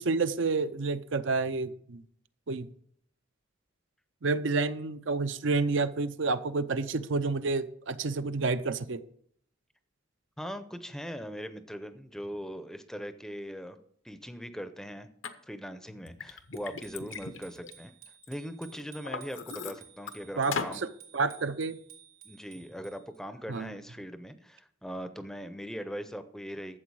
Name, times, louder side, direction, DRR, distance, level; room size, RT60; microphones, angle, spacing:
voice 1, 0.0-2.0 2.5-2.7 4.2-9.0 20.4-20.6 21.1-21.8 23.5-23.7, right 3 dB, 70° right, 0.6 m, -29 dB
voice 2, 10.4-13.8 14.0-15.1 15.5-17.9 18.3-20.8 22.2-26.8, equal, 5° left, 0.6 m, -40 dB
Liquid, 15.2-15.3 15.9-18.3 18.7-20.1 20.5-20.8, left 5 dB, 70° left, 0.9 m, -38 dB
Bicycle bell, 16.5-23.2, right 9 dB, 90° right, 3.0 m, -55 dB
12.5 x 7.7 x 4.7 m
head